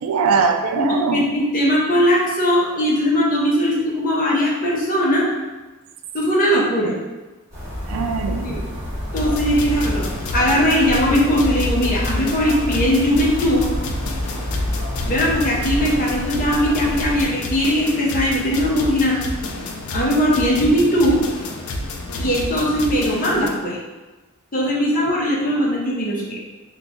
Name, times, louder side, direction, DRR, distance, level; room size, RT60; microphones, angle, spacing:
voice 1, 0.0-1.2 7.9-8.6, right 5 dB, 85° right, 5 dB, 0.3 m, -21 dB
voice 2, 0.8-5.3 6.1-6.9 8.4-8.6 9.1-10.1 10.3-13.7 15.1-19.2 19.9-21.2 22.2-23.8 24.5-26.4, equal, 40° left, -4 dB, 0.8 m, -19 dB
sound 1, 7.5-17.3, left 1 dB, 15° right, 1.1 m, -29 dB
sound 2, 9.2-23.5, left 2 dB, 90° left, 0.5 m, -29 dB
3.0 x 2.4 x 3.7 m, 1.2 s
head